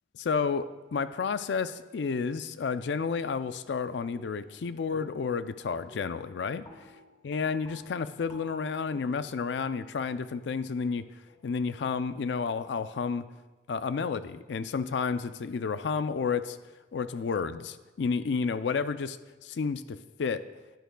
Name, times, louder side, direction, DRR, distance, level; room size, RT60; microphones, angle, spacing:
voice 1, 0.1-6.6 7.2-11.0 11.4-13.2 13.7-16.6 16.9-19.2 19.4-20.5, left 5 dB, 80° left, 13 dB, 0.4 m, -31 dB
sound 1, 4.1-4.6 4.9-5.4 5.7-11.5, left 1 dB, 25° left, 1.3 m, -54 dB
14.0 x 9.2 x 2.2 m, 1.2 s
head